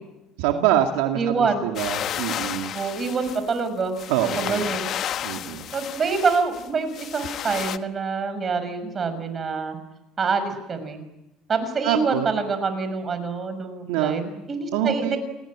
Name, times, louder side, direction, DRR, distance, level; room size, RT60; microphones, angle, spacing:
voice 1, 0.4-1.3 1.6-2.7 4.1-4.7 5.2-5.7 11.8-12.3 13.9-14.3 14.7-15.1, right 11 dB, 85° right, 4 dB, 2.3 m, -25 dB
voice 2, 1.1-1.7 2.7-3.9 4.2-4.9 5.7-9.8 10.2-11.0 11.5-14.2 14.5-15.2, right 4 dB, 35° right, 10 dB, 6.2 m, -26 dB
sound 1, 1.8-7.8, left 10 dB, 55° left, 1.2 m, -32 dB
28.5 x 19.5 x 8.8 m, 0.91 s
supercardioid pair, 100°, 0 cm